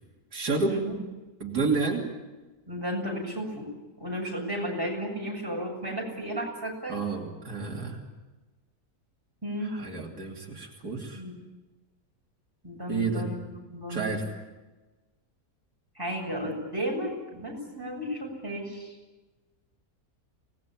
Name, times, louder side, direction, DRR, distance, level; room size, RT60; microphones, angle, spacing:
voice 1, 0.3-0.8 1.4-2.1 6.9-8.0 9.7-11.2 12.9-13.3 13.9-14.3, right 4 dB, 85° right, -1 dB, 3.5 m, -30 dB
voice 2, 2.7-3.7 4.0-7.0 9.4-9.7 11.1-11.3 12.6-13.4 13.7-14.1 16.0-18.9, equal, 15° right, -1 dB, 7.1 m, -33 dB
25.5 x 19.5 x 8.7 m, 1.2 s
omnidirectional pair, 1.6 m